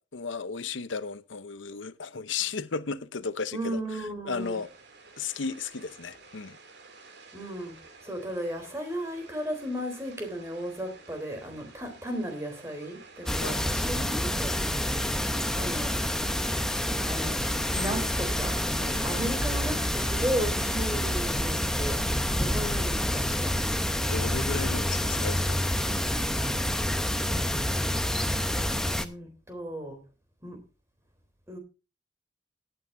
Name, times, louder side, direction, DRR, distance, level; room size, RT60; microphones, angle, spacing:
voice 1, 0.0-4.7 5.2-6.6 13.4-13.7 18.8-19.2 24.1-26.2, left 5 dB, 85° left, 0.8 m, -35 dB
voice 2, 3.5-4.6 7.3-7.8 8.0-14.6 15.6-16.0 17.1-17.4 17.7-18.6 19.0-22.0 22.4-23.6 27.2-27.7 28.9-30.0 30.4-30.6 31.5-31.6, equal, 15° right, 3.4 m, -35 dB
sound 1, 4.4-21.5, right 3 dB, 65° right, 2.6 m, -51 dB
sound 2, 13.3-29.1, left 1 dB, 5° left, 0.8 m, -28 dB
18.0 x 8.9 x 2.6 m
head